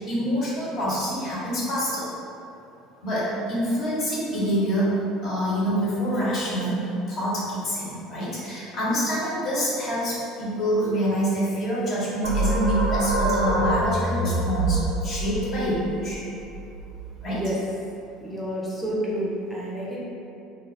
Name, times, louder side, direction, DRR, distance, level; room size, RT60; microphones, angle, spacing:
voice 1, 0.0-2.1 3.0-16.2 17.2-17.4, equal, 45° left, -8 dB, 1.0 m, -26 dB
sound 1, 12.2-17.5, right 1 dB, 75° right, 0.4 m, -26 dB
voice 2, 18.2-20.0, right 1 dB, 5° right, -6 dB, 0.5 m, -29 dB
2.5 x 2.1 x 3.4 m, 2.6 s
figure-of-eight pair, 65°, 0 cm